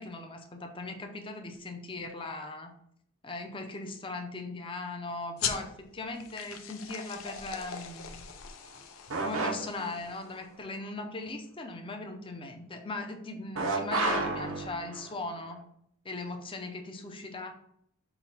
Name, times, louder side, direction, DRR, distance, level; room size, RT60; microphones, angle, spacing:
voice 1, 0.0-2.7 3.2-8.1 9.2-15.7 16.0-17.5, left 2 dB, 25° left, 4 dB, 0.6 m, -39 dB
sound 1, 5.4-10.5, left 7 dB, 80° left, 0.5 m, -40 dB
sound 2, 9.1-10.0 13.6-15.1, right 2 dB, 70° right, 0.7 m, -31 dB
5.6 x 2.2 x 4.1 m, 0.70 s
head